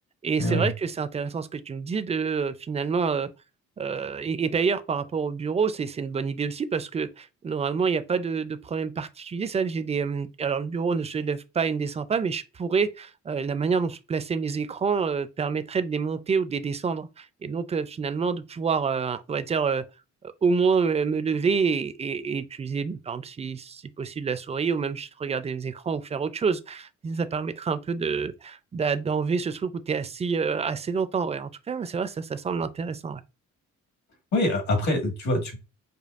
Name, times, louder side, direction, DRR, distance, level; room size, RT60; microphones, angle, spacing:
voice 1, 0.2-3.3 3.8-19.9 20.4-33.2, right 5 dB, 20° right, 0.4 m, -27 dB
voice 2, 34.3-35.6, left 1 dB, 65° left, 1.8 m, -24 dB
5.1 x 2.3 x 2.4 m
cardioid pair, 90°, 30 cm